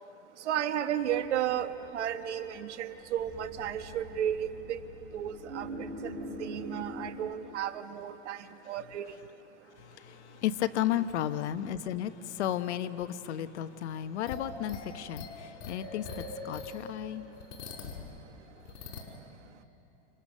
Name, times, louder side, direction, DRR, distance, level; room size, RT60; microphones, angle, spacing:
voice 1, 0.4-4.8 5.1-5.7 6.0-9.1 10.9-11.0, right 10 dB, 90° right, 9 dB, 1.5 m, -33 dB
sound 1, 1.0-7.1, equal, 10° right, 6.1 m, -44 dB
voice 2, 10.4-12.1 12.4-15.3 15.7-16.0 16.4-17.2, left 11 dB, 75° left, 11 dB, 1.1 m, -32 dB
sound 2, 14.3-18.1 18.6-19.1, left 3 dB, 60° left, 5.4 m, -42 dB
29.0 x 29.0 x 6.5 m, 2.9 s
supercardioid pair, 155°, 34 cm